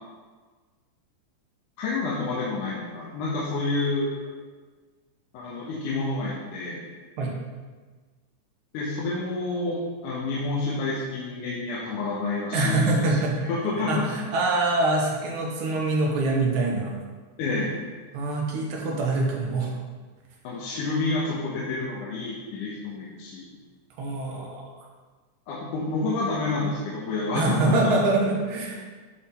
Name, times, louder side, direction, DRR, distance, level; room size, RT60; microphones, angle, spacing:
voice 1, 1.8-4.1 5.3-6.8 8.7-14.1 17.4-17.8 20.4-23.5 25.5-27.9, left 3 dB, 85° left, -5 dB, 2.5 m, -29 dB
voice 2, 12.5-13.5 13.9-16.9 18.1-19.8 24.0-24.6 27.4-28.8, right 2 dB, 75° right, -1 dB, 2.5 m, -24 dB
10.5 x 3.7 x 4.2 m, 1.4 s
omnidirectional pair, 3.5 m